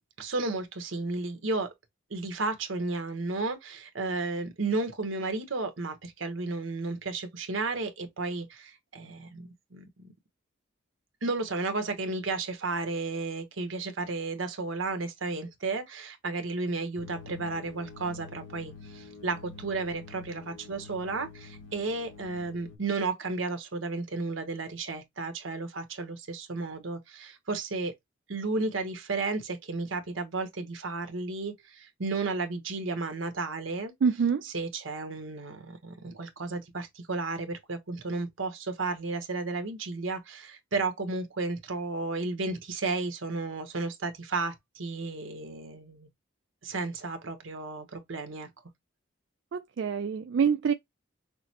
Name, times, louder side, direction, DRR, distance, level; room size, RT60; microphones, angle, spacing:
voice 1, 0.2-1.7 2.1-10.1 11.2-27.9 28.3-33.9 34.5-46.1 46.6-48.5, right 3 dB, 80° right, 1.1 m, -33 dB
sound 1, 17.0-22.8, left 4 dB, 70° left, 0.9 m, -47 dB
voice 2, 34.0-34.4 49.5-50.7, right 6 dB, 65° right, 0.3 m, -26 dB
5.8 x 2.1 x 2.9 m
head